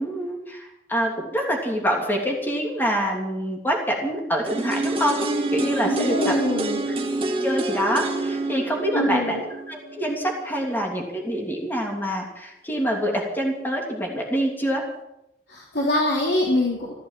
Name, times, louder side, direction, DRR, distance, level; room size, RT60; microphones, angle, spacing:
voice 1, 0.0-5.2 5.5-6.4 6.9-7.0 7.4-9.4 9.7-14.8, equal, 10° left, 0 dB, 3.0 m, -26 dB
sound 1, 4.5-10.4 10.7-10.8, right 2 dB, 30° right, 1.9 m, -27 dB
voice 2, 5.8-6.8 8.9-9.4 15.5-16.9, left 1 dB, 70° left, -3 dB, 3.5 m, -24 dB
15.0 x 12.5 x 7.6 m, 0.87 s
head